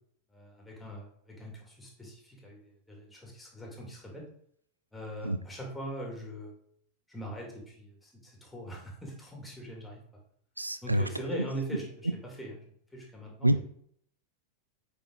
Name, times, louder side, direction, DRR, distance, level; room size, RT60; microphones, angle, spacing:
voice 1, 0.3-4.2 4.9-6.5 7.1-10.0 10.8-12.6 12.9-13.6, right 1 dB, 5° left, -1 dB, 2.6 m, -42 dB
voice 2, 10.6-11.0 11.3-11.4 13.4-13.6, right 1 dB, 85° right, 11 dB, 0.4 m, -26 dB
8.7 x 4.5 x 3.9 m, 0.64 s
figure-of-eight pair, 90°, 0 cm